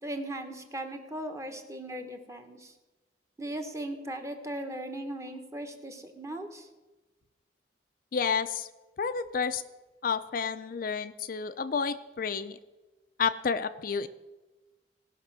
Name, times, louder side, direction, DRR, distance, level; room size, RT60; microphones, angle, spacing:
voice 1, 0.0-2.7 3.4-6.7, right 1 dB, 15° right, 5 dB, 1.1 m, -38 dB
voice 2, 8.1-8.7 9.0-9.6 10.0-12.6 13.2-14.1, left 6 dB, 50° left, 10 dB, 0.4 m, -30 dB
18.0 x 6.0 x 6.1 m, 1.1 s
head